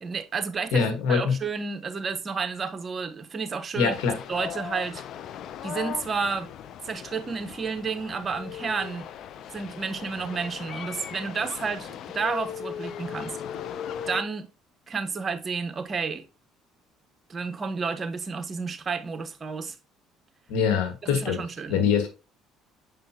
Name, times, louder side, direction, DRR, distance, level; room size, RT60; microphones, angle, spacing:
voice 1, 0.0-3.9 4.3-5.0 5.6-6.5 6.8-9.1 9.5-13.4 14.1-14.5 14.9-16.3 17.3-19.8 21.0-21.8, right 5 dB, 35° right, 1.1 m, -31 dB
voice 2, 0.7-1.4 3.8-4.2 20.5-21.4 21.7-22.1, left 6 dB, 80° left, 1.7 m, -23 dB
sound 1, 3.9-14.2, left 9 dB, 60° left, 0.6 m, -38 dB
7.4 x 5.2 x 2.8 m
supercardioid pair, 80°, 0 cm